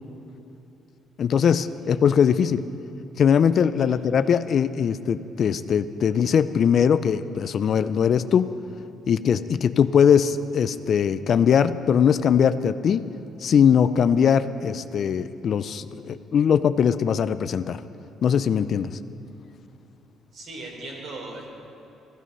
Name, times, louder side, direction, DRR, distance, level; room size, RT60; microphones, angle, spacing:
voice 1, 1.2-2.6 3.2-8.5 9.1-13.0 13.4-17.8 18.2-18.9, left 7 dB, 55° left, 13 dB, 0.4 m, -21 dB
voice 2, 20.3-21.5, right 2 dB, 60° right, -1 dB, 3.9 m, -38 dB
15.0 x 12.5 x 5.5 m, 2.9 s
cardioid pair, 95°, 0 cm